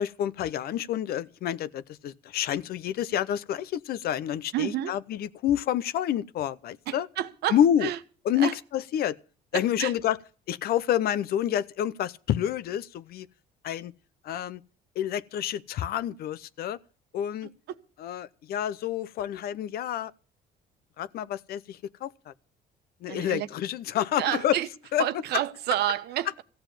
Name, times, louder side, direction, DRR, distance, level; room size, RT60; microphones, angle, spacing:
voice 1, 0.0-7.1 7.5-7.9 8.2-9.2 9.5-10.2 10.5-13.3 13.6-13.9 14.2-14.6 15.0-16.8 17.1-17.5 18.0-20.1 21.0-22.3 23.0-24.6 24.9-25.1, left 10 dB, 65° left, 0.7 m, -28 dB
voice 2, 4.5-4.9 6.9-8.0 8.4-8.5 9.5-9.9 17.4-17.5 23.1-23.5 24.2-24.7 25.0-26.4, right 12 dB, 75° right, 1.1 m, -30 dB
15.5 x 7.0 x 9.0 m
cardioid pair, 110°, 17 cm